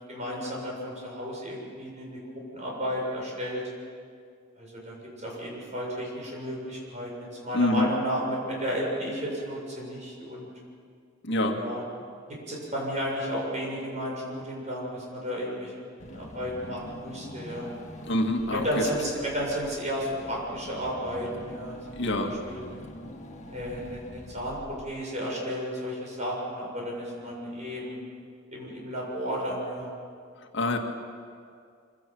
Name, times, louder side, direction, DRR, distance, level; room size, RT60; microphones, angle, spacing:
voice 1, 0.1-2.2 2.5-3.6 4.6-4.9 5.2-10.5 11.5-11.8 12.5-15.8 16.1-17.7 18.5-21.8 22.2-22.6 23.5-24.6 24.8-28.0 28.5-29.9, equal, 35° right, -3 dB, 7.2 m, -33 dB
voice 2, 7.5-7.9 11.2-11.6 18.0-18.8 22.0-22.3 30.5-30.8, left 1 dB, 65° left, 3 dB, 2.0 m, -25 dB
Car / Engine, 16.0-25.2, left 1 dB, 40° left, 2.0 m, -45 dB
24.5 x 17.0 x 7.7 m, 2.2 s
head